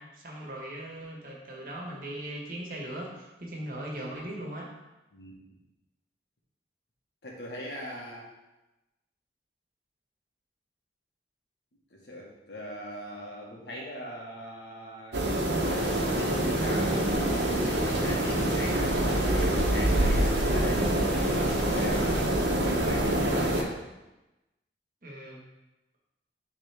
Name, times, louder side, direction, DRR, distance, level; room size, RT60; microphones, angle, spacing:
voice 1, 0.0-4.7 25.0-25.4, right 1 dB, 50° right, -2 dB, 1.5 m, -39 dB
voice 2, 5.1-5.6 7.2-8.3 11.9-15.4 16.1-22.2 22.6-23.8, equal, 75° left, -2 dB, 1.5 m, -40 dB
sound 1, 15.1-23.6, right 1 dB, 80° right, 1.0 m, -26 dB
sound 2, 15.6-22.3, equal, 10° left, 0.8 m, -39 dB
9.7 x 3.6 x 3.5 m, 1.0 s
head